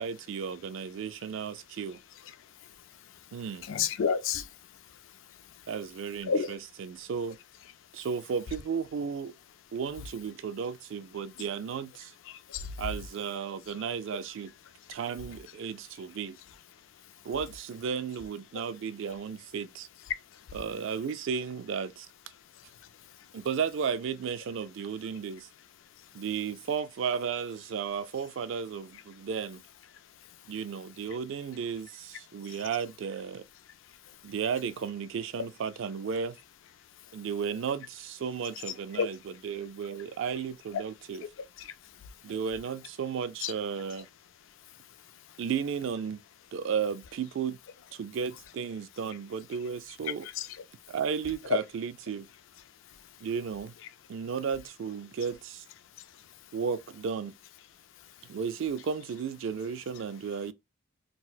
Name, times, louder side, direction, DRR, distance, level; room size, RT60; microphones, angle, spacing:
voice 1, 0.0-2.0 3.3-3.7 5.7-7.4 7.9-9.3 9.7-12.1 12.8-14.5 14.9-16.4 17.2-19.9 20.5-22.1 23.3-25.5 26.1-29.6 30.5-33.5 34.2-36.4 37.1-41.2 42.2-44.1 45.4-46.2 46.5-47.6 47.9-50.3 50.9-52.3 53.2-53.7 54.1-55.6 56.5-57.3 58.2-60.5, right 6 dB, 60° right, 0.3 m, -34 dB
voice 2, 3.6-4.5 6.3-6.5 12.3-12.7 38.9-39.1 41.6-41.7 43.4-43.5 50.4-50.5, left 6 dB, 65° left, 0.3 m, -29 dB
4.1 x 2.0 x 2.2 m
head